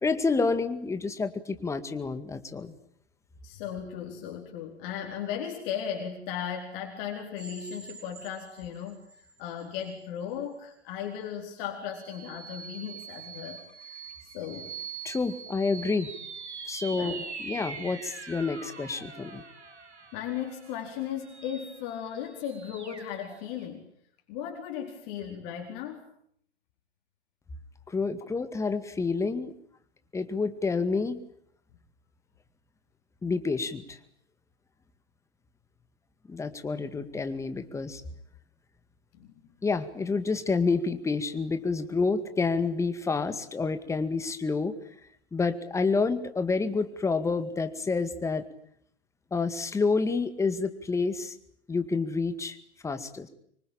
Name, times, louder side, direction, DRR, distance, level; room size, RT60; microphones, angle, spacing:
voice 1, 0.0-2.7 15.0-16.1 16.7-19.4 27.9-29.5 30.1-31.2 33.2-34.0 36.3-38.0 39.6-44.7 45.3-48.4 49.3-51.4 51.7-52.6 52.8-53.3, left 4 dB, 10° left, 10 dB, 2.0 m, -28 dB
voice 2, 3.4-14.7 16.9-17.2 20.1-23.9 24.3-26.0 39.1-39.3, left 9 dB, 40° left, 2 dB, 4.5 m, -36 dB
sound 1, 7.4-9.3 9.8-9.9 11.9-23.6, right 5 dB, 85° right, 5.3 m, -43 dB
25.5 x 23.5 x 8.9 m, 0.68 s
hypercardioid pair, 125°, 33 cm